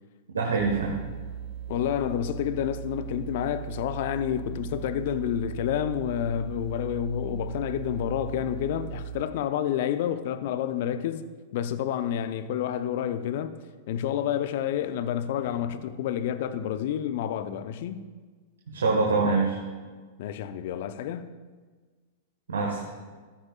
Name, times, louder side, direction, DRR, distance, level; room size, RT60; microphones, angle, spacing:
voice 1, 0.3-1.0 18.7-19.6 22.5-22.8, right 4 dB, 75° right, 1.5 m, -24 dB
sound 1, 0.6-9.2, right 10 dB, 40° right, 1.7 m, -38 dB
voice 2, 1.7-11.2 11.5-13.5 13.9-18.0 20.2-21.3, left 10 dB, 55° left, 0.7 m, -29 dB
14.5 x 13.0 x 2.5 m
figure-of-eight pair, 100°, 0 cm